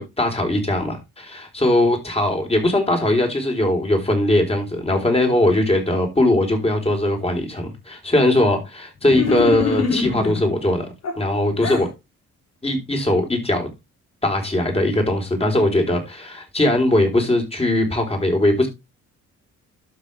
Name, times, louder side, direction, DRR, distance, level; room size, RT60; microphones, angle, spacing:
voice 1, 0.0-10.9 11.2-11.9 12.6-13.7 14.2-18.7, left 1 dB, 20° left, 4.3 m, -20 dB
sound 1, 9.1-10.4 11.0-11.9, left 4 dB, 60° left, 4.0 m, -24 dB
12.0 x 6.2 x 3.4 m
cardioid pair, 90°, 30 cm